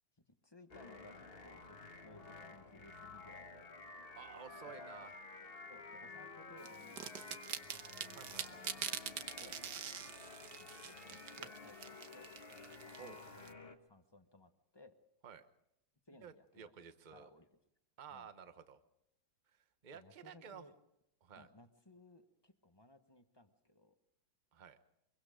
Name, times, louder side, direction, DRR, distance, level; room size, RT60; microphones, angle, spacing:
voice 1, 0.4-3.7 4.5-5.1 5.7-7.1 8.4-8.8 9.4-9.6 10.6-12.3 13.0-13.6 13.9-15.0 16.1-17.5 18.1-18.3 19.9-20.7 21.4-23.9, left 1 dB, 15° left, 7 dB, 1.0 m, -61 dB
sound 1, 0.7-13.8, left 3 dB, 35° left, 1.6 m, -52 dB
voice 2, 4.2-5.2 8.1-8.6 13.0-13.2 15.2-15.5 16.2-17.3 18.0-18.8 19.6-20.6 21.2-21.5 24.5-24.8, right 7 dB, 30° right, 10 dB, 1.0 m, -53 dB
sound 2, 6.6-13.5, right 8 dB, 65° right, 1.5 m, -45 dB
24.0 x 23.5 x 5.1 m, 0.80 s
omnidirectional pair, 2.0 m